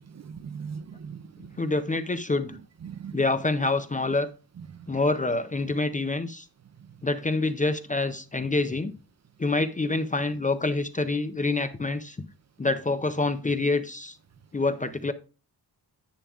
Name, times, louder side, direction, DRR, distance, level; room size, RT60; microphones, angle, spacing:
voice 1, 0.1-1.6 2.8-3.2 4.7-4.9, right 6 dB, 45° right, 0.4 m, -40 dB
voice 2, 1.6-2.6 3.1-4.3 4.9-6.5 7.0-8.9 9.4-12.2 12.6-14.2 14.5-15.1, left 3 dB, 20° left, 0.4 m, -26 dB
10.0 x 8.6 x 2.4 m
wide cardioid pair, 180°, 41 cm